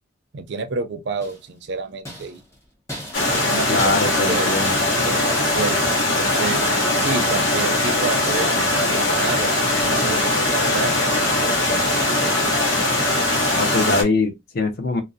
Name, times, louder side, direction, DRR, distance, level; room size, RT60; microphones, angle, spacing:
voice 1, 0.3-2.4 3.2-4.5 5.0-6.6 7.0-10.9 11.4-12.3, right 4 dB, 55° right, 0.4 m, -29 dB
sound 1, 1.2-1.7 2.1-6.1 6.4-7.0 7.4-7.8 8.3-8.7 9.3-9.8 10.2-10.6 10.9-11.6 12.0-12.4 12.8-13.1 13.4-13.8, equal, 15° left, 0.7 m, -39 dB
Stream, 3.1-14.0, left 1 dB, 70° left, 0.9 m, -20 dB
voice 2, 3.4-4.9 10.0-10.5 12.1-12.2 13.5-15.0, left 3 dB, 45° left, 0.4 m, -24 dB
2.5 x 2.0 x 2.5 m
head